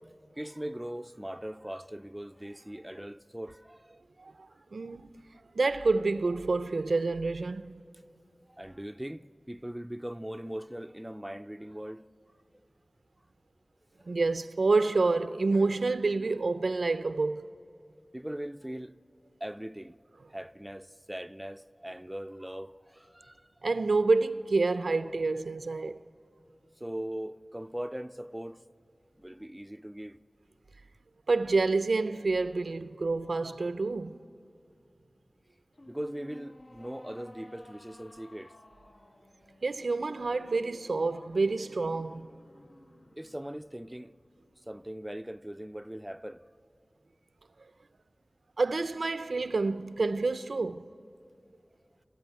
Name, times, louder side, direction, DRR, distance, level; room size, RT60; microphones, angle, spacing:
voice 1, 0.3-4.0 8.5-12.1 12.5-12.6 14.0-14.2 18.1-19.0 19.4-20.0 20.3-23.5 26.8-28.7 29.2-30.2 35.9-38.6 43.2-44.1 44.7-46.4, right 1 dB, 10° right, 0.5 m, -40 dB
voice 2, 4.7-5.1 5.6-7.7 14.1-17.5 23.6-26.0 31.3-34.2 39.6-42.3 48.6-50.9, right 3 dB, 90° right, 0.5 m, -28 dB
sound 1, 35.7-45.1, left 1 dB, 70° left, 1.7 m, -55 dB
28.0 x 13.0 x 9.3 m
wide cardioid pair, 50°, 0 cm